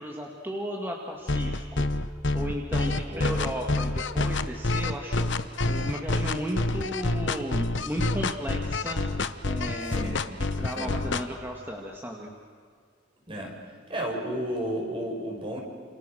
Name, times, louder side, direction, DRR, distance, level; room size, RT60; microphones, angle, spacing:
voice 1, 0.0-1.9 2.3-5.3 5.7-9.0 9.4-10.3 10.6-12.3, equal, 10° right, 0 dB, 2.2 m, -34 dB
sound 1, 1.3-11.2, left 2 dB, 65° left, 1.0 m, -27 dB
voice 2, 3.1-3.4 9.8-10.2 10.8-11.0 13.3-13.5 13.9-15.6, equal, 25° right, 1 dB, 5.6 m, -32 dB
28.5 x 28.0 x 6.5 m, 2.1 s
head